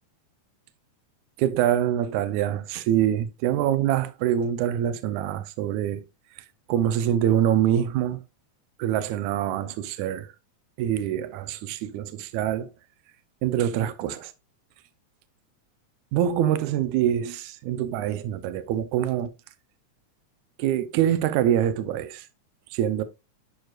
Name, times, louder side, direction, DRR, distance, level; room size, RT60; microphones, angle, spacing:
voice 1, 1.4-6.0 6.7-8.2 8.8-10.3 10.8-12.7 13.4-14.3 16.1-19.3 20.6-22.3 22.7-23.0, right 10 dB, 80° right, 2.0 m, -25 dB
11.5 x 4.6 x 2.4 m
omnidirectional pair, 3.4 m